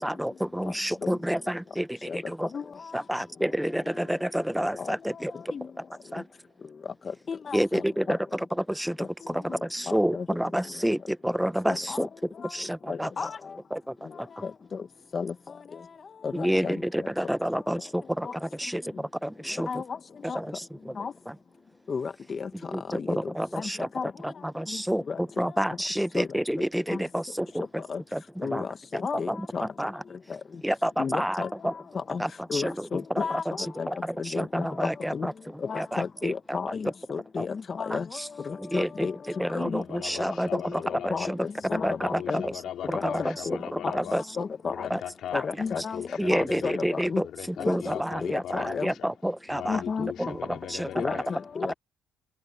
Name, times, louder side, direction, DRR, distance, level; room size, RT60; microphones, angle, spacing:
voice 1, 0.0-2.5 2.9-5.3 6.1-6.2 7.5-12.1 12.5-13.1 13.7-14.3 16.3-19.7 20.3-20.9 22.7-23.9 24.2-27.8 28.1-28.7 28.9-29.0 29.3-29.9 30.6-31.7 32.2-32.9 33.1-33.2 33.9-35.3 35.8-36.6 37.4-37.5 38.6-39.1 39.4-40.5 41.0-41.4 41.7-42.5 42.9-43.3 43.7-44.2 44.9-45.0 45.3-45.4 46.2-49.8 50.3-50.4 50.7-51.2, equal, 5° right, 0.9 m, -29 dB
voice 2, 7.3-8.2 9.0-9.1 10.1-10.2 11.7-12.1 12.4-12.5 12.9-13.4 14.4-14.5 15.1-15.3 16.2-16.7 19.7-19.8 20.3-20.4 21.0-21.1 21.9-22.5 22.9-23.2 23.6-23.7 23.9-24.1 25.1-25.2 26.1-26.3 26.9-27.0 27.9-28.0 28.4-28.7 29.0-29.6 31.0-31.5 32.1-32.2 32.5-33.4 33.8-33.9 34.2-34.7 35.1-35.3 35.6-38.0 38.5-39.1 39.5-39.8 40.5-40.6 40.9-42.0 42.3-42.4 42.9-43.6 43.8-43.9 44.4-44.9 45.3-46.0 46.3-47.2 47.6-47.8 48.2-48.9 49.7-50.1 50.9-51.7, left 5 dB, 40° left, 1.0 m, -32 dB
voice 3, 39.6-41.3 41.7-44.2 44.6-46.8 47.2-49.1 49.5-51.4, left 10 dB, 65° left, 3.4 m, -39 dB
cardioid pair, 85°, 0 cm